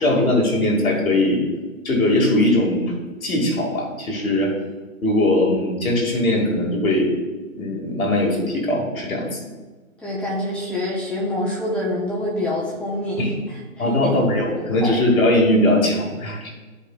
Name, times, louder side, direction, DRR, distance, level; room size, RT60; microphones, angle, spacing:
voice 1, 0.0-1.4 1.8-3.0 3.2-4.5 5.0-7.2 7.6-9.4 13.2-13.3 13.8-16.5, left 1 dB, 70° left, 0 dB, 2.2 m, -20 dB
voice 2, 10.0-14.1 14.8-15.0, left 1 dB, 5° left, -6 dB, 0.8 m, -26 dB
12.5 x 5.0 x 2.4 m, 1.3 s
figure-of-eight pair, 135°, 43 cm